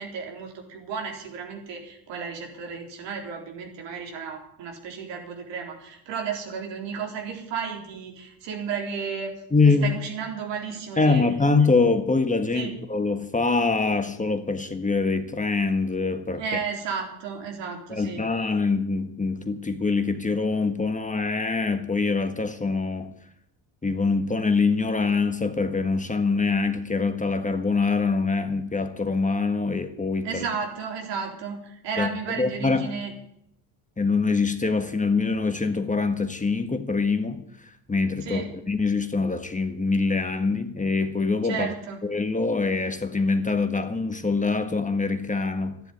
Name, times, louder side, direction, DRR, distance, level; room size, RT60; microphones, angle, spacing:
voice 1, 0.0-9.3 9.6-11.2 12.5-12.8 16.4-18.2 30.2-33.1 38.2-38.5 41.4-42.0, right 6 dB, 75° right, 4.0 m, -33 dB
voice 2, 9.5-10.0 11.0-16.4 17.9-23.1 23.8-30.4 32.0-33.0 34.0-41.7 42.0-45.8, left 4 dB, 15° left, 1.6 m, -24 dB
12.5 x 10.5 x 9.4 m
supercardioid pair, 80°, 43 cm